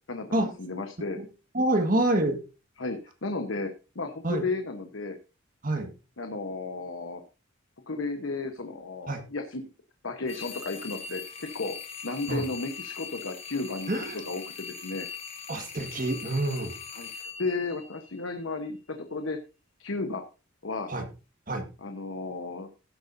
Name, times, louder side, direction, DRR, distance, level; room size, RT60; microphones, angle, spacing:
voice 1, 0.1-1.2 2.8-3.7 3.9-5.2 6.2-7.2 7.9-9.7 10.0-11.7 12.0-15.1 16.9-19.4 19.8-20.2 20.6-20.9 21.8-22.7, left 3 dB, 75° left, 6 dB, 1.1 m, -34 dB
voice 2, 1.5-2.4 4.2-4.4 5.6-5.9 9.1-9.2 12.3-12.5 13.9-14.2 15.5-16.7 20.9-21.1 21.5-21.7, right 1 dB, 40° right, 6 dB, 1.7 m, -27 dB
sound 1, 10.3-18.4, left 6 dB, 30° left, 1.6 m, -41 dB
16.0 x 7.8 x 2.7 m, 0.32 s
head